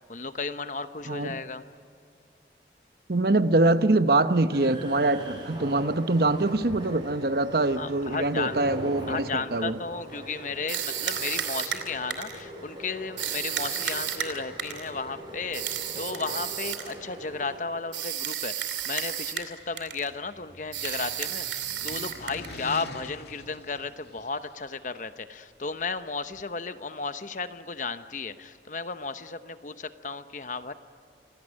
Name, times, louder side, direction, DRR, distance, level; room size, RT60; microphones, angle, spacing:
voice 1, 0.1-1.6 7.8-30.7, left 4 dB, 45° left, 0.9 m, -34 dB
voice 2, 3.1-9.8, right 2 dB, 55° right, 0.9 m, -24 dB
sound 1, 4.5-17.6, equal, 25° right, 5.4 m, -42 dB
sound 2, 10.7-12.4 13.2-14.9 15.5-16.9 17.9-19.5 19.8-20.1 20.7-22.6, right 10 dB, 90° right, 2.7 m, -32 dB
sound 3, 19.5-24.6, left 2 dB, 70° left, 1.9 m, -46 dB
27.0 x 18.5 x 9.9 m
head